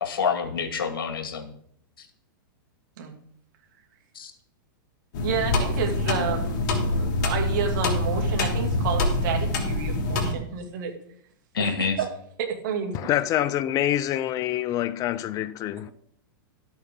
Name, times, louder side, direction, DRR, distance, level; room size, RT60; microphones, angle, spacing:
voice 1, 0.0-1.5 4.2-4.3 11.5-12.0, left 6 dB, 85° left, 2.0 m, -27 dB
sound 1, 5.1-10.3, left 2 dB, 55° left, 3.0 m, -25 dB
voice 2, 5.2-6.6 6.9-10.9 11.6-12.1 12.4-13.1, right 7 dB, 60° right, 2.6 m, -30 dB
voice 3, 12.9-15.9, left 12 dB, 30° left, 0.5 m, -26 dB
13.0 x 8.6 x 3.8 m
hypercardioid pair, 130°, 12 cm